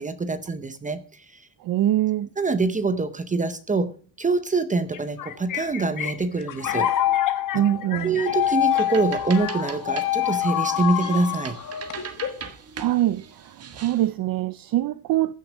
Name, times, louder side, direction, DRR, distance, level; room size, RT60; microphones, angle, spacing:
voice 1, 0.0-1.5 2.4-3.9 4.2-6.9 8.0-11.6, right 3 dB, 20° right, 0.7 m, -25 dB
voice 2, 1.6-2.3 7.5-8.2 12.2-12.3 12.8-15.3, right 13 dB, 55° right, 0.5 m, -24 dB
sound 1, 4.9-12.5, left 12 dB, 50° left, 1.3 m, -26 dB
sound 2, 8.4-14.1, right 7 dB, 35° right, 1.4 m, -40 dB
15.0 x 6.6 x 6.2 m
cardioid pair, 165°, 41 cm